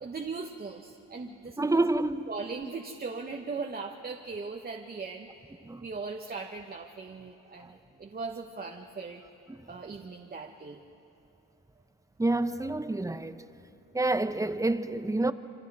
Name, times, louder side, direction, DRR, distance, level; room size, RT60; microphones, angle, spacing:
voice 1, 0.0-1.8 2.3-9.2 9.7-10.8, right 4 dB, 30° right, 1.1 m, -39 dB
voice 2, 1.6-2.3 5.7-5.8 12.2-13.4 13.9-15.3, right 2 dB, 10° right, 0.8 m, -28 dB
27.5 x 24.0 x 4.8 m
cardioid pair, 90°, 30 cm